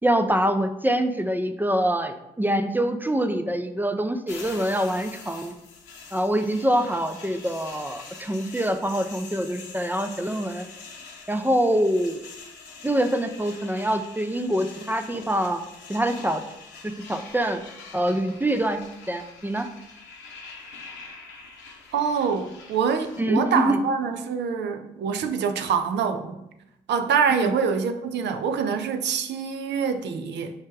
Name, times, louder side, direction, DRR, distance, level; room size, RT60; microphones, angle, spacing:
voice 1, 0.0-5.5 6.1-10.7 11.3-12.2 12.8-15.6 15.9-16.4 16.8-17.6 17.9-18.8 19.1-19.7 23.2-23.8 27.3-27.5, right 1 dB, 10° right, 8 dB, 0.4 m, -25 dB
sound 1, 4.3-23.2, left 4 dB, 80° left, 0.7 m, -44 dB
voice 2, 21.9-26.4 26.9-30.5, right 6 dB, 65° right, 8 dB, 0.5 m, -25 dB
4.7 x 2.2 x 4.6 m, 0.86 s
hypercardioid pair, 45°, 19 cm